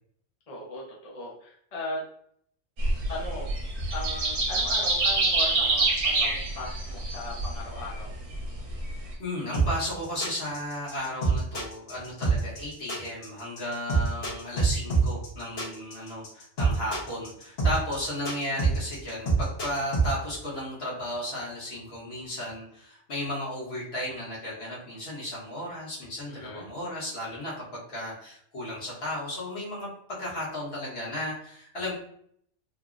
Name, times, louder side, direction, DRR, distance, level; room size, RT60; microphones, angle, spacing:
voice 1, 0.5-2.1 3.1-3.5 3.9-8.1 26.3-26.7, left 2 dB, 40° left, -4 dB, 0.6 m, -38 dB
sound 1, 2.8-9.1, right 2 dB, 75° right, 1.0 m, -27 dB
voice 2, 9.2-29.9 30.2-31.9, left 1 dB, 60° left, -6 dB, 1.4 m, -34 dB
sound 2, 9.5-20.1, right 4 dB, 80° left, 1.5 m, -25 dB
3.5 x 2.0 x 2.4 m, 0.65 s
omnidirectional pair, 1.2 m